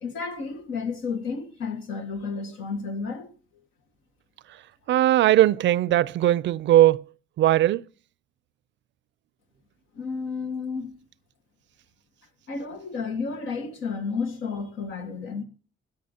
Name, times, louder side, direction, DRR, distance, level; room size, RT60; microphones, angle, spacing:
voice 1, 0.0-3.4 9.9-11.0 12.5-15.4, left 5 dB, 85° left, 1.7 m, -32 dB
voice 2, 4.9-7.0 7.4-7.8, right 13 dB, 65° right, 0.4 m, -19 dB
16.0 x 10.5 x 2.8 m
cardioid pair, 90°, 20 cm